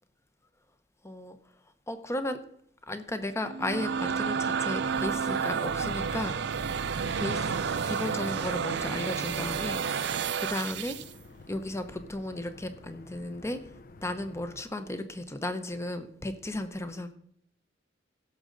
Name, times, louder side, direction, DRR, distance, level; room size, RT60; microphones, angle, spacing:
voice 1, 1.0-1.4 1.9-2.4 2.9-6.4 7.2-7.6 7.8-9.8 10.4-11.0 11.5-13.6 14.0-17.1, left 1 dB, 15° left, 9 dB, 0.8 m, -34 dB
sound 1, 3.4-11.1, right 6 dB, 65° right, 0.5 m, -30 dB
sound 2, 4.1-14.6, left 3 dB, 50° left, 0.5 m, -51 dB
sound 3, 7.3-10.7, right 3 dB, 80° right, 1.0 m, -46 dB
16.0 x 6.5 x 3.9 m, 0.66 s
head